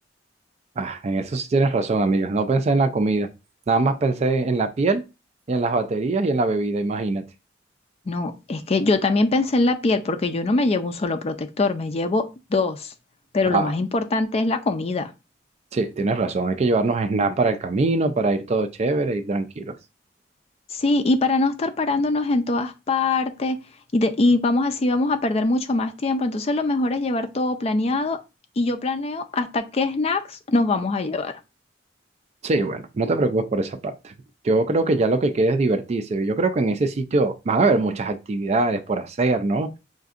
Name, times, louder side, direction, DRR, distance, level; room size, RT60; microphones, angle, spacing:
voice 1, 0.8-3.3 3.7-5.0 5.5-7.2 13.5-13.7 15.7-19.7 32.4-34.1 34.4-39.7, right 3 dB, 35° right, 0.3 m, -22 dB
voice 2, 8.1-12.9 13.3-15.1 20.7-23.6 23.9-28.2 28.6-31.4, left 2 dB, 35° left, 0.4 m, -23 dB
5.7 x 2.6 x 2.4 m
head